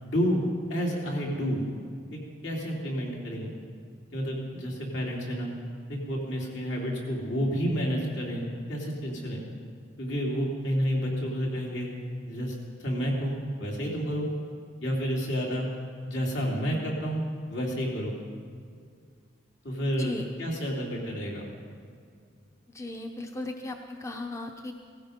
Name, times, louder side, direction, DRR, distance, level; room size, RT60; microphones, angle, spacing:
voice 1, 0.0-0.4 0.7-1.7 2.1-3.5 4.1-5.5 5.9-9.4 10.0-11.9 12.2-12.5 12.8-14.3 14.8-15.7 16.1-18.2 19.6-21.4, equal, 65° left, -3 dB, 3.4 m, -30 dB
voice 2, 22.7-24.7, left 2 dB, 15° left, 4 dB, 0.8 m, -36 dB
18.0 x 15.5 x 5.3 m, 2.1 s
head